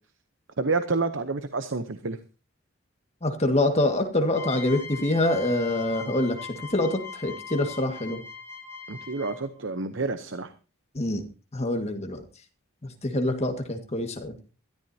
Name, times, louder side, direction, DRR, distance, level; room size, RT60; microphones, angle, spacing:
voice 1, 0.6-2.2 8.9-10.5, right 3 dB, 60° right, 10 dB, 0.8 m, -29 dB
voice 2, 3.2-6.4 6.7-8.2 10.9-11.2 11.5-12.2 13.0-14.3, left 1 dB, 30° left, 5 dB, 1.8 m, -25 dB
sound 1, 4.3-9.6, left 5 dB, 15° left, 5.9 m, -41 dB
21.0 x 13.5 x 2.8 m, 0.33 s
head